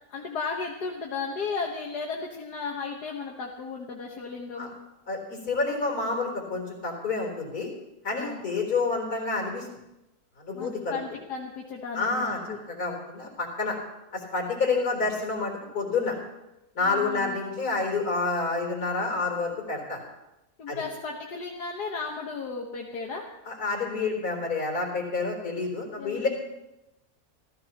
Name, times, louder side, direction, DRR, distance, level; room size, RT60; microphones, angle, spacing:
voice 1, 0.1-4.7 8.1-8.4 10.5-12.6 16.8-17.4 20.6-23.3 26.0-26.4, left 4 dB, 85° left, 0 dB, 1.9 m, -35 dB
voice 2, 5.1-7.7 8.0-9.7 10.4-11.0 11.9-12.4 12.7-13.8 14.1-16.1 16.8-20.0 20.7-20.8 23.5-26.4, left 3 dB, 70° left, 0 dB, 4.3 m, -28 dB
27.5 x 15.0 x 3.0 m, 0.95 s
omnidirectional pair, 1.7 m